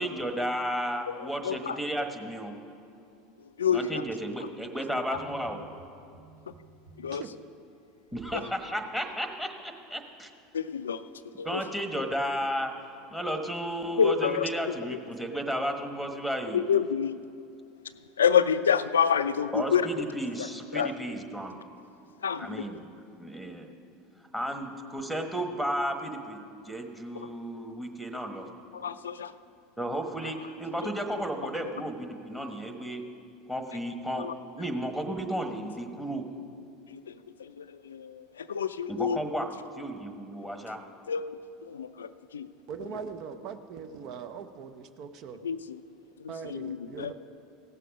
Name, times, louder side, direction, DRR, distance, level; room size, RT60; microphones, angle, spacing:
voice 1, 0.0-2.5 3.7-5.6 8.1-10.3 11.4-12.7 13.1-16.6 19.5-21.6 22.4-22.9 23.2-23.7 24.3-28.5 29.8-33.0 33.5-34.3 34.5-36.2 38.9-39.5 39.8-40.8, right 1 dB, ahead, 5 dB, 1.3 m, -33 dB
voice 2, 1.1-1.8 3.4-4.0 4.4-4.5 6.5-6.6 7.0-7.2 8.3-8.5 10.5-11.0 11.4-11.6 14.0-15.0 16.5-17.2 18.2-20.1 20.4-20.9 22.2-22.7 27.1-27.3 27.7-27.8 28.7-29.3 30.2-30.3 30.8-30.9 34.2-34.4 36.9-39.3 40.4-40.5 41.1-42.5 42.8-42.9 45.4-45.8 46.2-47.1, left 7 dB, 80° left, 12 dB, 0.3 m, -29 dB
sound 1, 5.0-8.5 8.9-9.1, right 4 dB, 80° right, 1.9 m, -53 dB
voice 3, 42.7-45.4 46.3-47.1, right 6 dB, 50° right, 9 dB, 0.6 m, -40 dB
16.5 x 6.7 x 5.2 m, 2.5 s
figure-of-eight pair, 75°, 0 cm